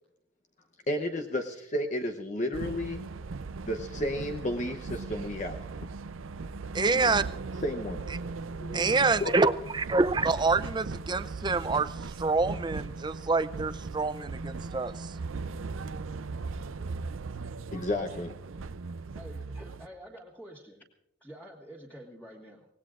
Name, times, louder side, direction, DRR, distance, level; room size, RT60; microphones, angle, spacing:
voice 1, 0.9-3.0 3.7-5.6 6.7-7.1 7.6-8.0 8.6-9.0 9.2-9.3 17.7-18.3, left 1 dB, 40° left, 3 dB, 0.8 m, -32 dB
sound 1, 2.5-19.9, right 4 dB, 90° right, 0.6 m, -38 dB
voice 2, 6.7-7.2 8.7-11.9 12.2-15.1, right 3 dB, 20° right, 13 dB, 0.5 m, -26 dB
voice 3, 19.1-20.8 21.2-22.7, right 1 dB, 10° left, -3 dB, 1.7 m, -48 dB
25.0 x 18.5 x 2.5 m, 0.78 s
head